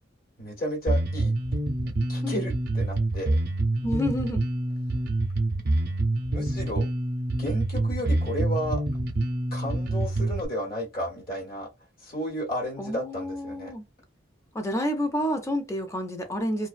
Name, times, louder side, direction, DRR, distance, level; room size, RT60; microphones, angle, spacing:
voice 1, 0.4-1.3 1.8-3.4 6.3-6.9 7.4-8.8 9.5-11.7 12.0-13.7, equal, 50° left, 1.1 m, -33 dB
Bass guitar, 0.9-10.5, right 2 dB, 55° right, 0.5 m, -26 dB
voice 2, 3.8-4.4 12.8-13.8 14.5-16.7, equal, 15° left, 0.5 m, -29 dB
2.4 x 2.2 x 2.4 m
head